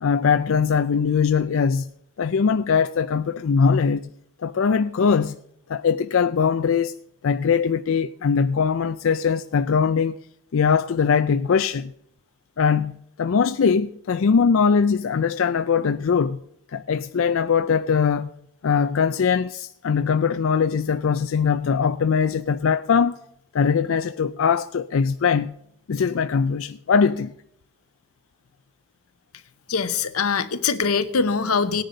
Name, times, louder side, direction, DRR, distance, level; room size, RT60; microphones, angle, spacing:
voice 1, 0.0-1.9 2.2-4.1 4.4-5.4 5.7-6.9 7.2-10.2 10.5-11.9 12.6-16.4 16.7-18.3 18.6-23.2 23.5-25.5 25.9-27.3, left 6 dB, 65° left, 0.4 m, -21 dB
voice 2, 29.7-31.8, left 5 dB, 90° left, 1.0 m, -23 dB
18.0 x 10.0 x 3.9 m
head